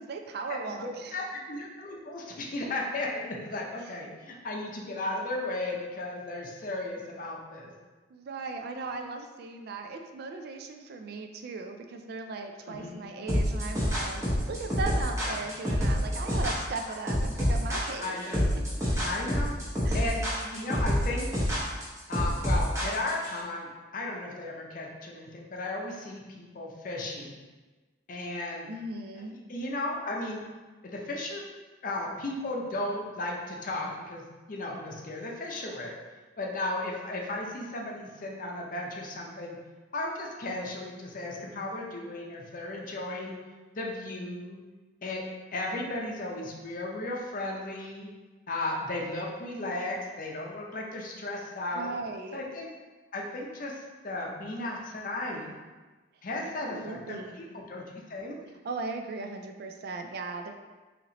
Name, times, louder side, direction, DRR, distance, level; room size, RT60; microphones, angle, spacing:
voice 1, 0.1-1.2 8.1-18.2 18.5-18.6 19.8-20.1 28.2-28.3 28.7-29.3 51.7-52.4 56.4-57.4 58.6-60.5, right 3 dB, 55° right, 4 dB, 0.3 m, -37 dB
voice 2, 0.7-7.7 8.8-8.9 12.7-13.1 15.2-15.4 18.0-18.4 19.0-19.5 19.9-21.3 22.1-27.4 28.1-28.7 29.5-30.4 30.8-31.4 31.8-35.9 36.4-39.6 39.9-43.3 43.7-44.6 45.0-45.2 45.5-48.1 48.5-51.9 52.3-52.7 53.1-55.6 56.2-57.8 58.1-58.4, left 2 dB, 45° left, -1 dB, 0.6 m, -35 dB
sound 1, 13.3-23.3, equal, 15° right, 0.9 m, -27 dB
4.1 x 2.9 x 2.9 m, 1.3 s
head